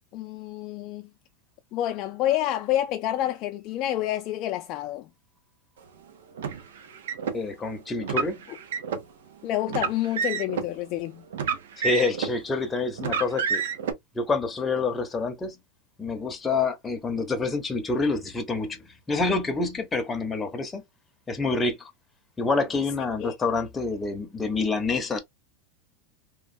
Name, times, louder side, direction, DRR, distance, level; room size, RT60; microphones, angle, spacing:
voice 1, 0.1-1.1 1.7-5.1 9.4-11.2 23.2-23.3, left 13 dB, 45° left, 0.4 m, -28 dB
Car, 6.4-7.4 8.0-9.0 9.7-10.7 11.3-12.4 13.0-13.9, right 6 dB, 85° right, 0.6 m, -29 dB
voice 2, 7.3-8.4 11.8-13.6 14.1-15.6 16.0-20.8 21.3-21.9 22.4-25.2, left 3 dB, 15° left, 0.7 m, -27 dB
3.0 x 2.2 x 2.5 m
supercardioid pair, 140°, 0 cm